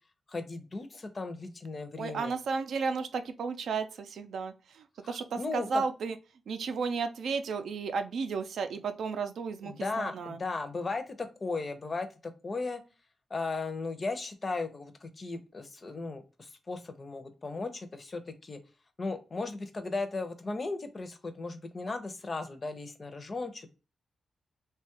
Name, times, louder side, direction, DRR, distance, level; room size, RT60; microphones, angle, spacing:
voice 1, 0.3-2.4 5.0-5.8 9.6-12.8 13.3-18.6 19.0-23.7, left 3 dB, 35° left, 9 dB, 0.5 m, -36 dB
voice 2, 2.0-6.2 6.5-10.4, right 5 dB, 75° right, 8 dB, 0.4 m, -33 dB
2.9 x 2.2 x 2.8 m, 0.32 s
cardioid pair, 110°, 0 cm